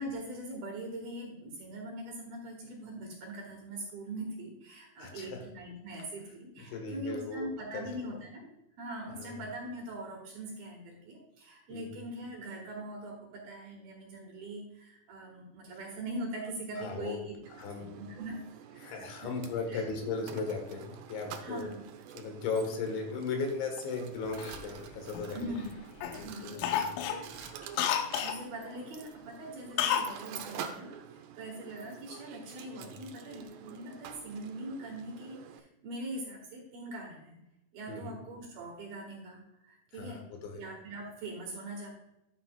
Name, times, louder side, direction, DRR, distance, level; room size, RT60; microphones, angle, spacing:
voice 1, 0.0-8.5 8.8-17.4 17.7-18.4 18.7-19.3 19.7-19.8 21.4-21.8 25.3-25.9 26.2-26.8 27.9-37.4 37.7-40.2 40.5-41.9, right 1 dB, 60° right, -1 dB, 3.0 m, -42 dB
voice 2, 5.0-5.4 6.7-7.5 7.7-7.9 9.2-9.4 11.7-12.0 16.8-17.2 17.6-18.0 18.8-21.7 22.2-25.6 26.1-27.2 32.7-33.0 37.9-38.2 39.9-40.6, left 4 dB, 75° left, 4 dB, 3.6 m, -37 dB
Mechanisms, 17.4-35.6, right 9 dB, 75° right, 2.6 m, -48 dB
Cough, 24.4-25.7 26.0-26.2 26.6-28.4 29.8-30.2 30.4-30.5, left 9 dB, 90° left, 3.3 m, -31 dB
12.0 x 7.6 x 2.3 m, 0.87 s
omnidirectional pair, 5.6 m